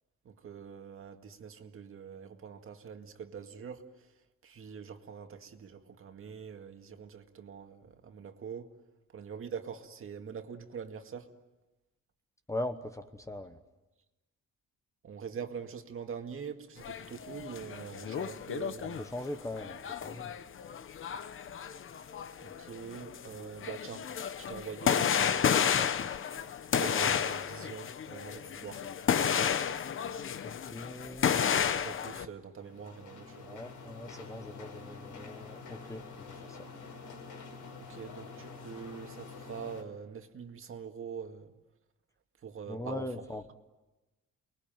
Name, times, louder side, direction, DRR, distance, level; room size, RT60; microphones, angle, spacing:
voice 1, 0.2-4.1 4.4-8.7 9.1-11.3 15.0-19.1 22.4-24.1 24.4-25.7 26.2-26.4 26.8-28.9 31.5-33.6 37.8-41.5 42.4-43.2, right 7 dB, 45° right, 2.1 m, -44 dB
voice 2, 12.5-13.6 19.0-20.3 30.4-31.4 33.5-36.0 36.4-36.6 42.7-43.5, left 1 dB, 10° left, 1.1 m, -40 dB
sound 1, 16.8-32.2, left 8 dB, 45° left, 1.1 m, -32 dB
sound 2, 32.6-39.8, left 4 dB, 90° left, 5.9 m, -47 dB
29.5 x 21.5 x 9.2 m
cardioid pair, 140°, 30 cm